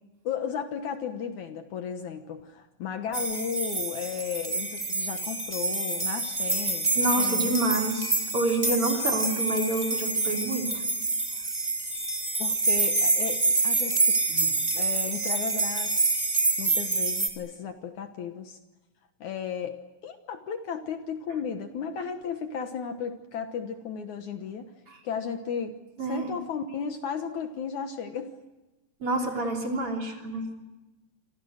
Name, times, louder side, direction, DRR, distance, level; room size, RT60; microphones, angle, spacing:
voice 1, 0.2-6.9 7.2-7.6 8.9-9.1 12.4-14.2 14.7-15.9 16.6-18.6 19.2-19.8 20.0-24.7 25.0-28.3 29.2-29.4, left 7 dB, 65° left, 7 dB, 2.4 m, -34 dB
sound 1, 3.1-17.3, right 3 dB, 10° right, 2.6 m, -27 dB
voice 2, 6.9-10.8 14.3-14.5 24.9-25.0 26.0-26.3 29.0-30.5, right 1 dB, 40° right, 2 dB, 4.0 m, -28 dB
28.5 x 25.5 x 6.5 m, 1.1 s
omnidirectional pair, 4.1 m